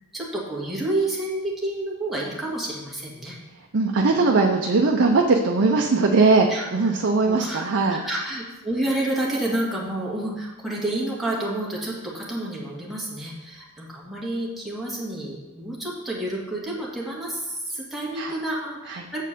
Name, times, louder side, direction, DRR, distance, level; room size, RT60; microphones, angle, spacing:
voice 1, 0.1-3.4 4.2-4.4 6.5-6.7 7.2-19.2, right 1 dB, ahead, -5 dB, 1.8 m, -29 dB
voice 2, 3.7-8.0 18.2-18.3 18.9-19.1, right 3 dB, 55° right, 2 dB, 0.6 m, -20 dB
7.2 x 4.4 x 6.7 m, 1.1 s
head